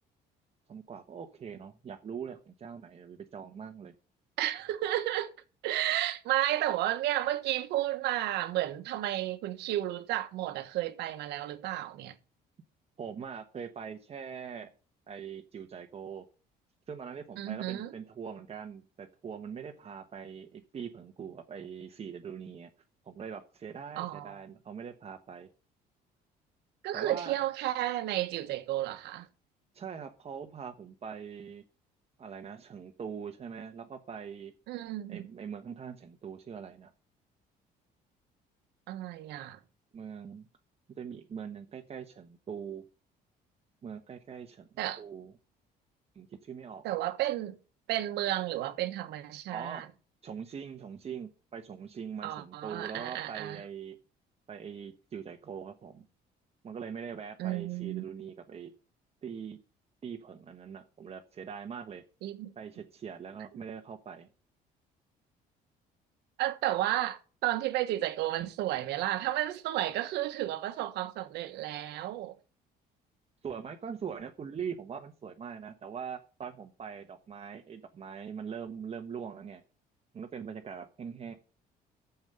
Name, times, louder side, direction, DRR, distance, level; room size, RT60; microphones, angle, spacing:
voice 1, 0.7-3.9 13.0-14.7 15.1-16.2 16.9-22.7 23.0-25.5 26.9-27.4 29.7-31.6 32.2-34.5 35.1-36.9 39.9-40.5 40.9-42.8 43.8-44.7 45.0-45.3 46.1-46.8 49.5-49.8 50.2-54.0 54.5-56.0 56.6-58.7 59.2-59.6 60.0-62.0 62.6-64.3 73.4-79.6 80.1-81.3, right 7 dB, 35° right, 1.2 m, -42 dB
voice 2, 4.4-5.3 5.6-12.1 17.4-17.9 24.0-24.4 26.8-29.3 34.7-35.3 38.9-39.6 44.8-45.0 46.8-47.6 47.9-49.9 52.2-53.6 57.4-58.1 62.2-62.5 66.4-72.3, right 14 dB, 85° right, 1.3 m, -32 dB
7.4 x 7.1 x 8.0 m
cardioid pair, 110°, 17 cm